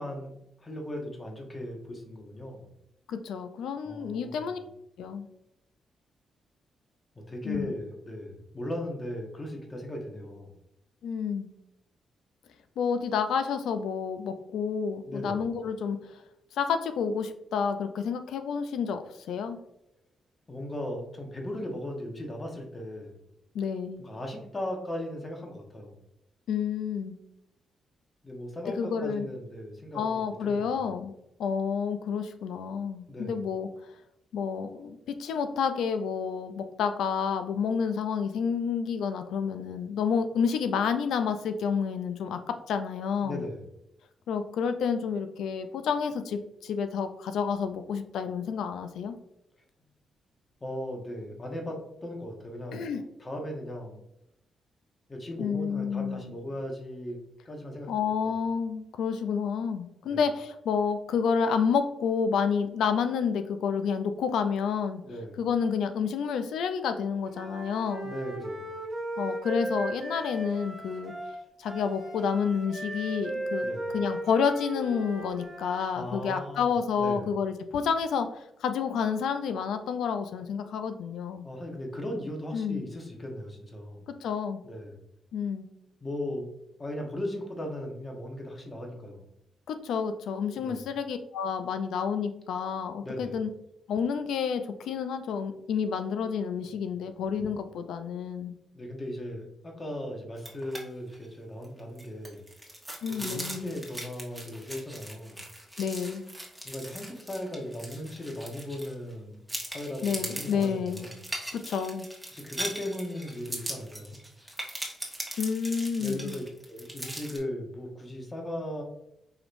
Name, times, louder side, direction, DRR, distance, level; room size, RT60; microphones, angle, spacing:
voice 1, 0.0-2.7 3.8-4.5 7.1-10.5 15.1-15.4 20.5-23.2 24.0-26.0 28.2-30.9 33.1-33.4 43.2-43.6 50.6-54.0 55.1-57.2 57.4-58.3 60.0-60.2 65.0-65.4 68.0-68.7 73.6-73.9 76.0-76.7 77.0-77.3 81.4-84.0 84.6-85.0 86.0-86.5 86.8-89.3 90.6-90.8 93.0-93.4 98.7-102.4 103.2-105.4 106.6-109.4 109.7-111.2 112.3-114.2 116.0-118.8, left 1 dB, 30° left, 1 dB, 1.1 m, -37 dB
voice 2, 3.1-4.6 5.0-5.3 7.4-7.7 11.0-11.5 12.8-16.0 16.5-19.6 23.5-24.0 26.5-27.2 28.8-29.3 29.9-31.1 31.4-33.7 34.3-43.4 44.3-49.2 52.7-53.0 55.4-56.4 57.9-65.0 65.4-68.1 69.2-71.1 71.6-73.7 73.9-81.5 82.5-82.9 84.2-84.6 85.3-85.7 89.7-93.5 93.9-98.5 103.0-103.7 105.8-106.3 110.0-111.1 111.5-112.1 115.4-116.3, left 6 dB, 85° left, 9 dB, 0.4 m, -29 dB
Wind instrument woodwind instrument, 67.3-75.8, right 1 dB, 20° right, 1.5 m, -36 dB
sound 1, 100.4-100.8 101.1-101.3 101.6-109.1 109.5-117.4, right 1 dB, 5° right, 1.1 m, -40 dB
4.8 x 3.1 x 2.5 m, 0.80 s
cardioid pair, 70°, 0 cm